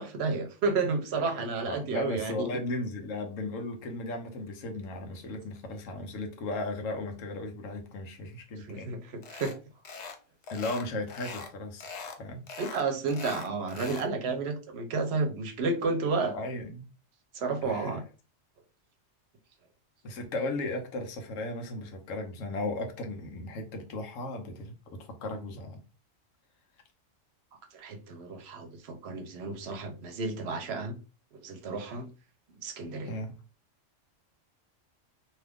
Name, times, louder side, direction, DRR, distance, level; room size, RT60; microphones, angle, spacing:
voice 1, 0.0-2.5 8.6-9.0 9.3-9.5 12.6-16.4 17.3-18.0 27.7-30.9 31.4-32.1 32.6-33.1, right 4 dB, 60° right, 6 dB, 0.8 m, -31 dB
voice 2, 1.7-8.9 10.5-11.9 12.2-12.4 16.3-16.9 17.6-18.0 20.0-24.7 25.0-25.8 33.1-33.3, left 2 dB, 90° left, 3 dB, 1.1 m, -36 dB
sound 1, 9.2-9.6 9.8-10.2 10.4-11.5 11.8-12.2 12.5-14.1, left 5 dB, 65° left, 0.4 m, -41 dB
2.8 x 2.4 x 3.4 m, 0.33 s
omnidirectional pair, 1.3 m